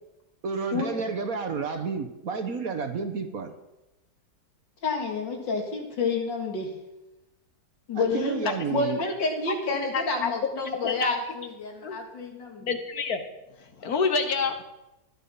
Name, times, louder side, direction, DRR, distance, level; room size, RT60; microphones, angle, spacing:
voice 1, 0.4-3.5 7.9-9.0, right 5 dB, 55° right, 7 dB, 1.4 m, -30 dB
voice 2, 4.8-6.7 7.9-8.4 8.7-12.7, left 3 dB, 75° left, 2 dB, 2.8 m, -29 dB
voice 3, 9.9-10.3 10.8-11.1 11.8-12.0 12.6-13.2 13.8-14.6, left 5 dB, 55° left, 7 dB, 1.6 m, -27 dB
14.0 x 10.5 x 5.6 m, 0.98 s
omnidirectional pair, 2.0 m